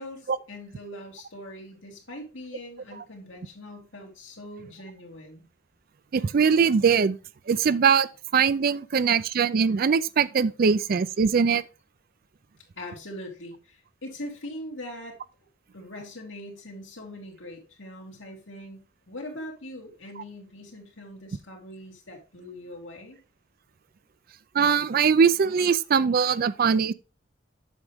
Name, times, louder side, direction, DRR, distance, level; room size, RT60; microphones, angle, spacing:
voice 1, 0.0-5.4 12.8-15.2 15.7-18.8 19.1-23.2, left 1 dB, 90° left, 2.8 m, -41 dB
voice 2, 6.1-7.2 7.5-8.1 8.3-11.6 24.5-26.9, right 6 dB, 50° right, 0.4 m, -21 dB
7.9 x 6.2 x 3.5 m
head